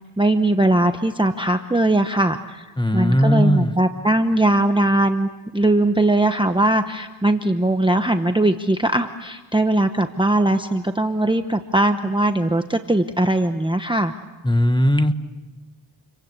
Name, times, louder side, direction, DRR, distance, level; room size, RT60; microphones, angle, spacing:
voice 1, 0.2-2.6 2.9-14.1, right 1 dB, 10° right, 7 dB, 0.9 m, -20 dB
voice 2, 2.8-3.7 14.4-15.1, equal, 10° left, 9 dB, 1.3 m, -18 dB
29.0 x 23.5 x 8.2 m, 1.2 s
wide cardioid pair, 110°, 47 cm